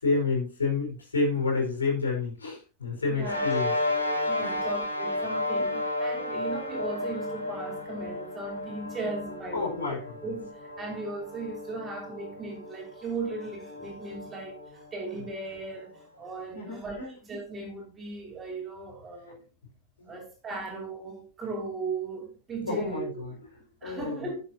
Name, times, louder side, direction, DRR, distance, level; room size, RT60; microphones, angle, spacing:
voice 1, 0.0-3.7 4.1-4.6 5.6-5.9 9.0-9.1 9.5-10.2 16.5-17.2 20.0-20.2 22.7-24.3, left 4 dB, 75° left, 5.4 m, -30 dB
voice 2, 3.1-3.4 4.3-10.0 10.2-17.0 17.3-19.4 20.1-23.2 23.8-24.4, right 3 dB, 20° right, 5.6 m, -37 dB
sound 1, 3.2-15.9, left 2 dB, 90° right, 4.5 m, -33 dB
12.0 x 9.5 x 3.0 m
figure-of-eight pair, 90°, 0 cm